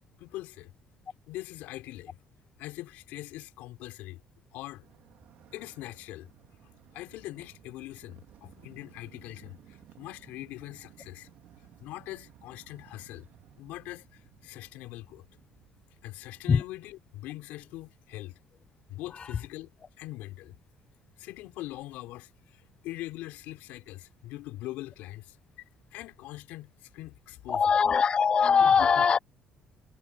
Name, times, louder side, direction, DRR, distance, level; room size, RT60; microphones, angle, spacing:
voice 1, 0.2-0.7 1.3-2.2 2.6-4.2 4.5-4.9 5.5-6.3 6.9-11.3 11.8-13.3 13.6-15.2 16.0-18.4 18.9-19.7 20.0-20.6 21.2-27.8 28.6-29.1, left 17 dB, 80° left, 3.6 m, -42 dB
Motorcycle, 4.8-17.0, right 12 dB, 70° right, 2.3 m, -58 dB
voice 2, 27.5-29.2, left 6 dB, 35° left, 0.4 m, -21 dB
supercardioid pair, 80°, 3 cm